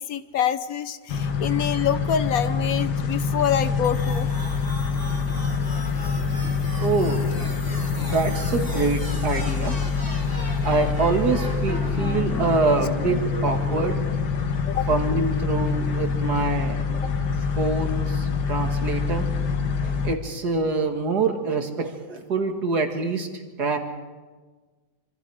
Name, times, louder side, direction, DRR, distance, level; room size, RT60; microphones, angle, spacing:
voice 1, 0.0-4.3 14.7-14.9, left 9 dB, 60° left, 12 dB, 1.3 m, -26 dB
sound 1, 1.1-20.2, left 5 dB, 80° left, 1.9 m, -26 dB
sound 2, 3.8-13.8, equal, 10° left, 3.0 m, -37 dB
voice 2, 6.8-7.3 8.0-9.7 10.6-14.0 14.9-17.1 17.6-19.3 19.8-23.3 23.6-23.8, right 3 dB, 70° right, 4 dB, 2.6 m, -25 dB
26.5 x 26.0 x 4.9 m, 1.4 s
omnidirectional pair, 1.8 m